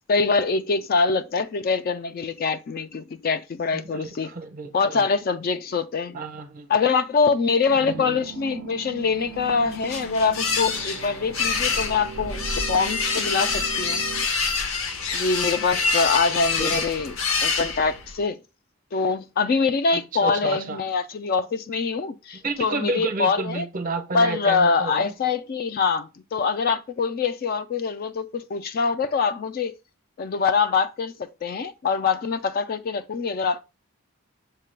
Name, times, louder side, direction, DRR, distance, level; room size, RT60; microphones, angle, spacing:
voice 1, 0.1-4.3 4.7-6.2 6.7-14.0 15.1-17.2 17.4-18.4 18.9-23.7 24.1-29.7 30.2-33.6, left 4 dB, 45° left, 0.3 m, -24 dB
voice 2, 3.7-5.1 6.1-6.7 7.8-8.2 16.6-16.8 19.9-20.8 22.4-25.1, right 3 dB, 40° right, 0.6 m, -31 dB
sound 1, 7.7-14.3, right 9 dB, 85° right, 0.3 m, -39 dB
sound 2, 9.3-18.2, left 4 dB, 65° left, 0.7 m, -26 dB
6.5 x 2.3 x 3.2 m
head